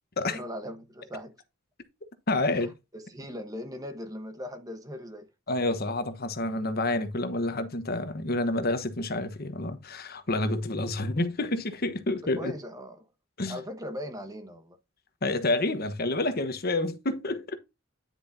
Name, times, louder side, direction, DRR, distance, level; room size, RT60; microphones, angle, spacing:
voice 1, 0.3-1.4 2.5-5.3 12.3-13.1 13.5-14.8, equal, 20° right, 1.2 m, -39 dB
voice 2, 2.3-2.7 5.5-12.5 13.4-13.6 15.2-17.6, left 2 dB, 50° left, 1.1 m, -29 dB
10.0 x 6.3 x 2.7 m
head